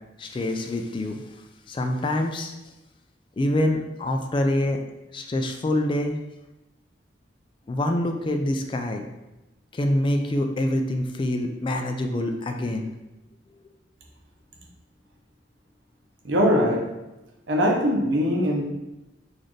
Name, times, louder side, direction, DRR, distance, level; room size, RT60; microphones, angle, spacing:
voice 1, 0.2-1.2 1.7-2.5 3.4-4.8 5.1-6.2 7.7-9.1 9.7-12.9, left 1 dB, 25° left, 4 dB, 0.3 m, -25 dB
voice 2, 16.2-16.8 17.5-18.6, equal, 90° right, 0 dB, 0.8 m, -21 dB
4.0 x 2.5 x 3.1 m, 1.0 s
head